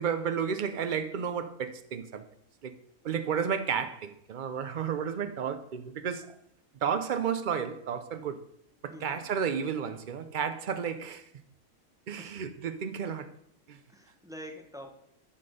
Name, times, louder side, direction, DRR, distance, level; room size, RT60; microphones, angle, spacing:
voice 1, 0.0-2.2 2.6-2.7 3.0-6.3 6.8-8.4 8.8-11.2 12.1-13.3 13.7-13.8, right 7 dB, 55° right, 0.5 m, -32 dB
voice 2, 8.9-9.2 12.2-12.4 13.9-14.9, equal, 5° right, 0.7 m, -45 dB
11.5 x 4.3 x 4.9 m
omnidirectional pair, 1.4 m